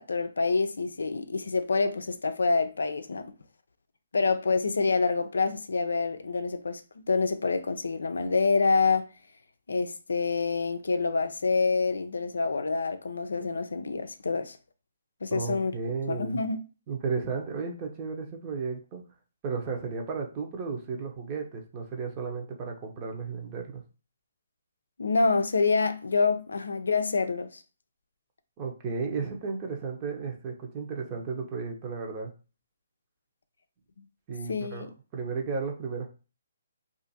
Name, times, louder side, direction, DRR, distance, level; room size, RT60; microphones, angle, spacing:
voice 1, 0.0-3.3 4.1-9.1 9.7-14.6 15.2-15.7 16.1-16.6 25.0-27.6 34.5-34.9, left 4 dB, 85° left, 0.4 m, -27 dB
voice 2, 15.3-16.4 16.9-19.0 19.4-23.8 28.6-32.3 34.3-36.1, right 5 dB, 25° right, 0.8 m, -34 dB
2.5 x 2.5 x 4.1 m
hypercardioid pair, 150°, 0 cm